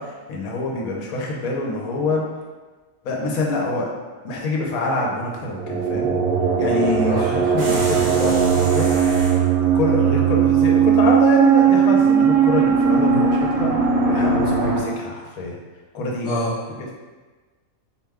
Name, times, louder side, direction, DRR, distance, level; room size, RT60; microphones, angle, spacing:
voice 1, 0.0-2.3 3.0-3.9 4.2-6.2 6.6-8.9 9.7-13.7 14.1-15.5 15.9-16.3, left 2 dB, 80° left, -1 dB, 1.1 m, -25 dB
sound 1, 5.4-14.8, right 6 dB, 85° right, 1.3 m, -18 dB
sound 2, 7.6-9.4, right 1 dB, 50° right, 1.1 m, -33 dB
voice 2, 16.2-16.9, equal, 65° left, -9 dB, 1.3 m, -27 dB
4.4 x 2.2 x 3.5 m, 1.3 s
omnidirectional pair, 1.5 m